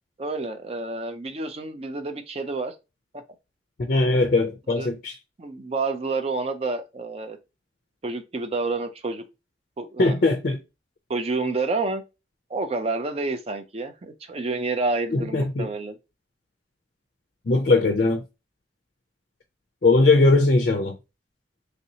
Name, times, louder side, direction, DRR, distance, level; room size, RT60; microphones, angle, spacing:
voice 1, 0.2-2.7 4.7-4.9 5.4-7.4 8.0-9.2 9.8-10.1 11.1-12.0 12.5-16.0, right 3 dB, 35° right, 0.5 m, -29 dB
voice 2, 3.8-5.1 10.0-10.6 15.1-15.7 17.5-18.2 19.8-20.9, left 3 dB, 50° left, 0.4 m, -20 dB
3.1 x 2.8 x 2.7 m
head